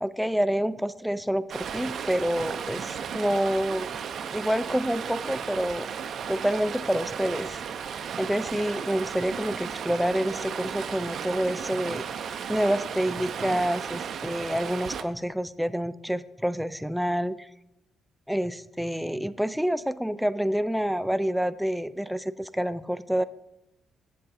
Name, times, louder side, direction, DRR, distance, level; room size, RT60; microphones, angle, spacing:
voice 1, 0.0-3.9 4.3-5.9 6.3-7.6 8.2-12.1 12.5-17.5 18.3-23.2, equal, ahead, 15 dB, 0.3 m, -28 dB
Stream, 1.5-15.0, right 7 dB, 60° right, 0.5 m, -35 dB
7.7 x 7.5 x 4.1 m, 0.89 s
cardioid pair, 90°, 0 cm